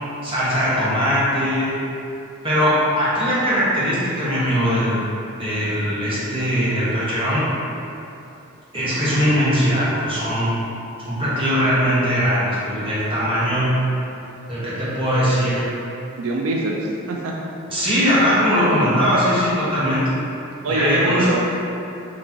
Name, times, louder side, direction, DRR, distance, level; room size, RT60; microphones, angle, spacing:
voice 1, 0.2-1.7 2.4-5.0 5.4-7.4 8.7-10.5 11.0-13.7 14.5-15.7 17.7-20.0 20.7-21.3, equal, 25° right, -10 dB, 1.2 m, -20 dB
voice 2, 16.2-17.3 20.6-21.4, right 2 dB, 85° right, -1 dB, 0.4 m, -24 dB
5.8 x 3.0 x 2.8 m, 2.8 s
head